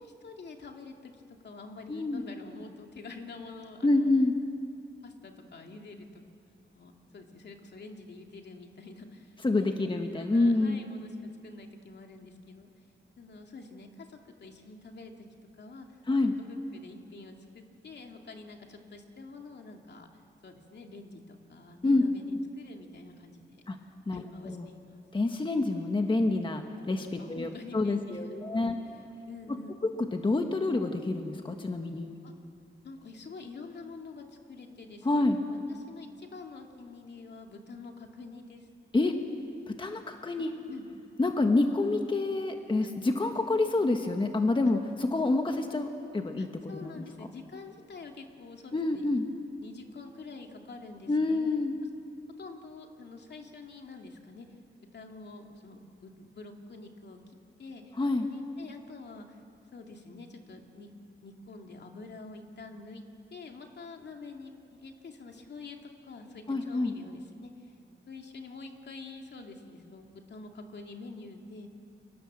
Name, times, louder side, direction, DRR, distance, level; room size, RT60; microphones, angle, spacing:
voice 1, 0.0-4.1 5.0-6.1 6.5-9.7 10.1-12.7 13.2-15.3 15.6-15.9 16.2-20.1 20.4-23.6 24.1-25.0 27.2-29.8 32.2-32.3 32.8-38.7 40.4-40.8 41.6-41.8 42.8-42.9 46.4-49.2 49.6-51.5 52.4-54.5 54.8-59.4 59.7-60.9 61.2-63.0 63.3-65.8 66.0-67.5 68.1-71.7, left 3 dB, 60° left, 3 dB, 2.5 m, -47 dB
voice 2, 1.9-2.2 3.8-4.3 9.4-10.8 16.1-16.3 21.8-22.0 23.7-23.8 24.1-24.7 25.1-28.8 29.8-32.2 35.0-35.4 38.9-39.1 39.7-40.5 41.2-47.0 48.7-49.2 51.1-51.7 58.0-58.3 66.5-66.9, left 2 dB, 25° left, 5 dB, 1.4 m, -27 dB
29.0 x 24.5 x 7.6 m, 2.6 s
wide cardioid pair, 125°, 19 cm